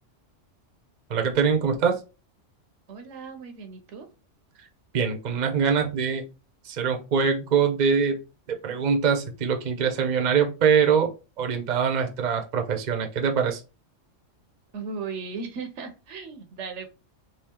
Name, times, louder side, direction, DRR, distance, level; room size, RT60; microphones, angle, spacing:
voice 1, 1.1-2.0 4.9-6.2 6.7-8.2 8.6-11.1 11.4-13.6, right 6 dB, 45° right, 4 dB, 0.7 m, -23 dB
voice 2, 2.9-4.1 14.7-16.9, right 5 dB, 75° right, 7 dB, 1.0 m, -36 dB
3.5 x 2.8 x 2.9 m, 0.30 s
omnidirectional pair, 1.2 m